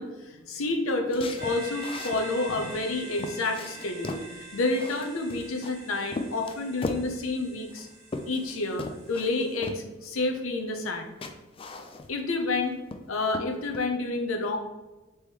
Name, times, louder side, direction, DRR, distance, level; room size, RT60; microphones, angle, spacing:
voice 1, 0.0-4.2 4.5-7.9 8.3-11.1 12.1-12.8 13.1-14.6, left 2 dB, 85° left, 4 dB, 0.7 m, -29 dB
sound 1, 1.1-2.2 2.8-2.9 3.2-4.3 4.7-5.7 6.1-7.1 7.7-8.5 8.8-9.3 9.6-9.8 10.8-11.0 11.2-12.3 12.6-13.1 13.3-13.9, left 2 dB, 25° left, 0.3 m, -37 dB
sound 2, 1.4-9.6, right 2 dB, 50° right, 1.2 m, -45 dB
3.5 x 3.1 x 4.5 m, 1.1 s
head